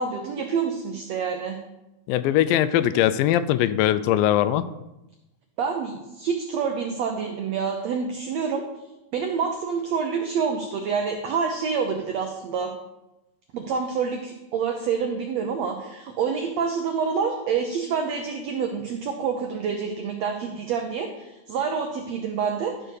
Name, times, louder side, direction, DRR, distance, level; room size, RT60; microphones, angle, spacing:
voice 1, 0.0-1.6 5.6-8.6 9.1-12.7 13.5-23.0, right 6 dB, 85° right, 4 dB, 1.5 m, -27 dB
voice 2, 2.1-4.7, left 12 dB, 85° left, 13 dB, 2.2 m, -21 dB
12.5 x 4.4 x 6.4 m, 0.97 s
omnidirectional pair, 4.1 m